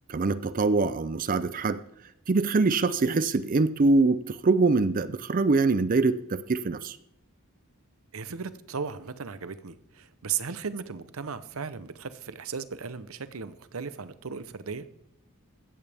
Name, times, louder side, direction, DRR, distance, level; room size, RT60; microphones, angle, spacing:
voice 1, 0.1-1.8 2.3-7.0, right 3 dB, 40° right, 15 dB, 0.5 m, -24 dB
voice 2, 8.1-14.8, right 6 dB, 75° right, 13 dB, 0.8 m, -36 dB
16.0 x 13.5 x 3.5 m, 0.83 s
head